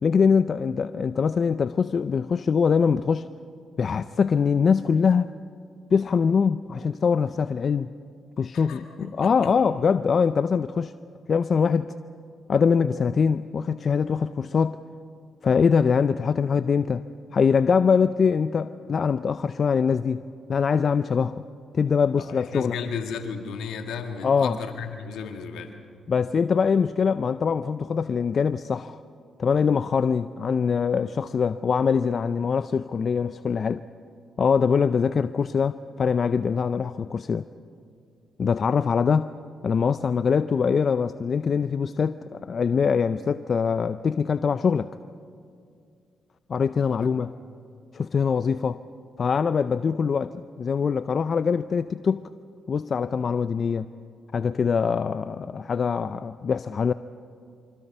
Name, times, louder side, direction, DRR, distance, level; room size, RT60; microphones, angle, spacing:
voice 1, 0.0-3.3 3.8-5.3 5.9-7.9 8.4-10.9 11.3-11.9 12.5-14.8 15.4-17.0 17.3-20.2 20.5-21.4 21.7-22.8 24.2-24.6 26.1-29.0 29.4-33.8 34.4-37.5 38.4-39.3 39.6-44.9 46.5-47.3 47.9-48.8 49.2-52.3 52.7-53.9 54.3-56.9, left 6 dB, 55° left, 13 dB, 0.5 m, -23 dB
voice 2, 8.5-9.5 22.3-25.7 46.9-47.3, left 6 dB, 80° left, 5 dB, 1.8 m, -35 dB
26.0 x 25.0 x 5.6 m, 2.3 s
supercardioid pair, 50°, 0 cm